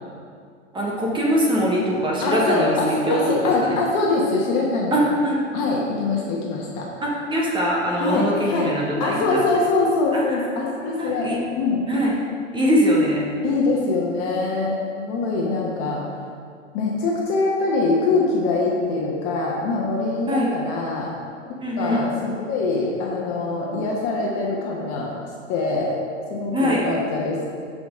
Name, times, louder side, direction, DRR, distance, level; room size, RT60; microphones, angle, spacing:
voice 1, 0.7-3.8 4.9-5.4 7.0-9.4 10.1-10.2 10.8-11.4 11.9-12.2 12.5-13.2 20.3-20.5 21.6-22.0 26.5-26.9, equal, 15° right, -3 dB, 1.1 m, -22 dB
voice 2, 2.2-5.0 5.5-6.9 8.0-8.7 9.0-11.3 11.6-11.8 13.4-16.0 16.7-21.1 21.8-25.1 25.5-25.9 26.3-27.5, left 3 dB, 40° left, -3 dB, 1.3 m, -23 dB
11.5 x 5.2 x 3.7 m, 2.2 s
hypercardioid pair, 120°, 37 cm